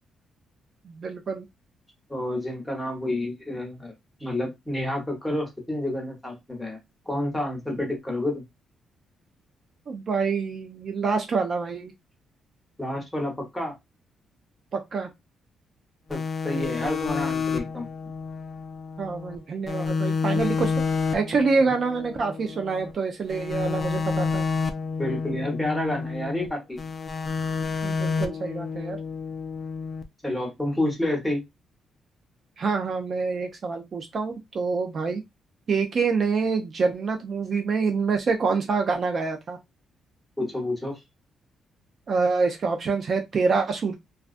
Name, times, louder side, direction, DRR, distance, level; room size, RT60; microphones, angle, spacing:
voice 1, 0.8-1.5 9.9-11.9 14.7-15.1 19.0-20.7 21.1-24.4 27.8-29.0 32.6-35.2 35.7-39.6 42.1-43.9, right 4 dB, 45° right, 0.4 m, -26 dB
voice 2, 2.1-3.9 4.2-6.8 7.1-8.4 12.8-13.7 16.1-17.9 25.0-26.8 30.2-31.4 40.4-41.0, left 1 dB, 5° left, 1.0 m, -29 dB
sound 1, 16.1-19.4 19.7-22.9 23.3-26.5 26.8-30.0, left 5 dB, 30° left, 0.3 m, -29 dB
2.3 x 2.2 x 2.4 m
cardioid pair, 125°, 0 cm